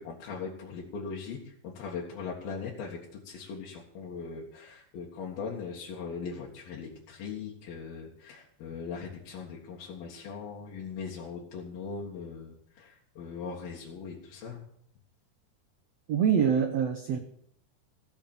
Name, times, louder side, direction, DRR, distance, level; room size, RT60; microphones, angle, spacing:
voice 1, 0.0-14.6, left 5 dB, 75° left, -4 dB, 3.5 m, -40 dB
voice 2, 16.1-17.2, right 7 dB, 75° right, 6 dB, 1.5 m, -25 dB
16.0 x 7.5 x 7.2 m, 0.70 s
omnidirectional pair, 4.3 m